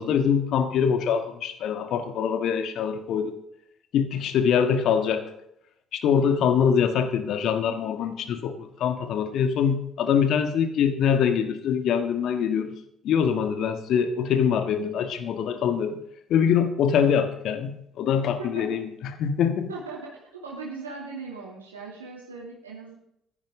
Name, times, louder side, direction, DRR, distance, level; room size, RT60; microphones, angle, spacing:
voice 1, 0.0-3.4 3.9-5.2 5.9-12.7 13.0-16.0 16.3-19.7, left 7 dB, 55° left, 8 dB, 1.6 m, -24 dB
voice 2, 18.4-18.7 19.7-23.0, right 4 dB, 85° right, -3 dB, 2.6 m, -39 dB
15.5 x 13.5 x 3.7 m, 0.76 s
figure-of-eight pair, 55°, 0 cm